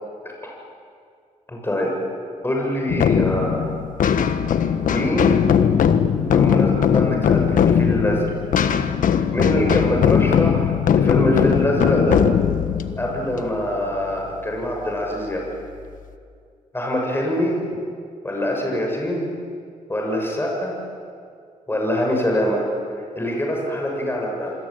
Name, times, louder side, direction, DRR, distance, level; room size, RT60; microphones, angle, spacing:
voice 1, 1.5-1.9 2.4-3.7 4.9-5.4 6.2-8.3 9.3-12.2 13.0-15.4 16.7-17.6 18.2-19.3 19.9-20.8 21.7-22.6 23.0-24.5, left 1 dB, 15° left, -1 dB, 7.4 m, -24 dB
sound 1, 2.9-14.3, left 7 dB, 80° left, 1.4 m, -19 dB
27.5 x 22.5 x 9.2 m, 2.3 s
cardioid pair, 85°, 14 cm